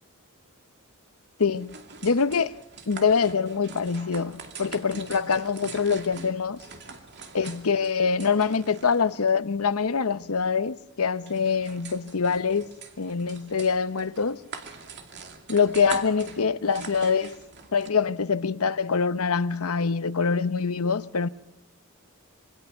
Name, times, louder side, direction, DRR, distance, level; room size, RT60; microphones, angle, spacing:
voice 1, 1.4-1.8 2.0-2.5 2.9-6.6 7.3-12.7 13.0-14.4 15.5-17.3 17.7-21.3, left 5 dB, 75° left, 0.8 m, -24 dB
sound 1, 1.4-17.9, right 5 dB, 55° right, 2.4 m, -44 dB
26.5 x 24.5 x 5.7 m
head